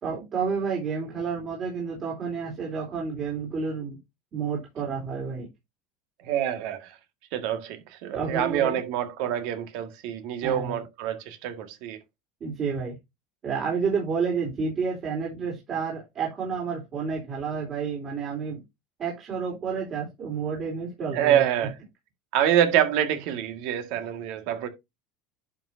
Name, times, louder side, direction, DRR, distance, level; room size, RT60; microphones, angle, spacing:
voice 1, 0.0-4.0 4.3-5.5 8.1-8.8 10.4-10.8 12.4-12.9 13.4-18.6 19.0-21.4, right 5 dB, 40° right, 3.8 m, -30 dB
voice 2, 6.2-6.9 7.3-12.0 21.1-21.7 22.3-24.7, right 10 dB, 70° right, 1.8 m, -26 dB
10.5 x 5.9 x 2.7 m
supercardioid pair, 115°, 0 cm